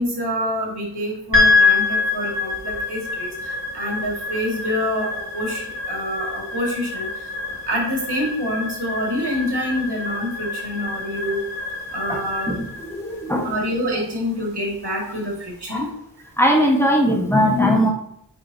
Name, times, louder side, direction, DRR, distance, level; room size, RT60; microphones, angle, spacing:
voice 1, 0.0-7.1 7.7-11.4 11.9-12.5 13.4-15.9, equal, 70° right, -2 dB, 2.3 m, -26 dB
sound 1, 1.3-15.7, left 4 dB, 55° left, 2.6 m, -26 dB
voice 2, 12.5-13.5 15.7-15.8 16.4-17.9, equal, 5° left, -1 dB, 1.5 m, -19 dB
8.6 x 5.0 x 2.9 m, 0.74 s
wide cardioid pair, 55°, 41 cm